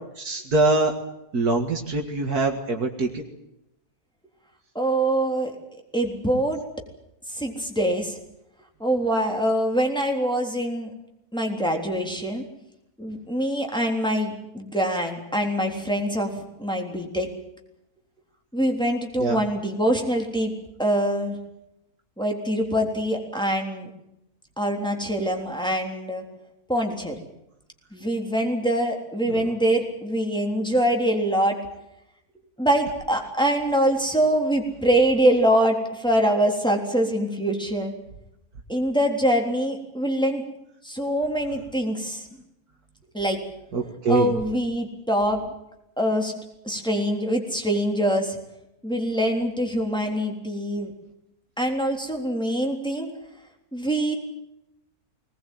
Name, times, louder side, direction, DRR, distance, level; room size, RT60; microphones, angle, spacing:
voice 1, 0.2-0.9 1.3-3.2 19.2-19.4 29.3-29.4 43.7-44.3, right 3 dB, 75° right, 3 dB, 2.4 m, -23 dB
voice 2, 4.8-5.5 5.9-6.6 7.3-8.2 8.8-10.9 11.3-12.4 13.0-17.3 18.5-20.5 20.8-21.4 22.2-23.9 24.6-26.2 26.7-27.2 27.9-31.6 32.6-37.9 38.7-40.4 40.8-42.2 43.1-43.4 44.1-45.5 46.0-46.3 46.6-48.4 48.8-50.9 51.6-53.1 53.7-54.1, right 1 dB, 5° left, 1 dB, 3.6 m, -24 dB
21.0 x 19.5 x 9.3 m, 0.86 s
omnidirectional pair, 1.7 m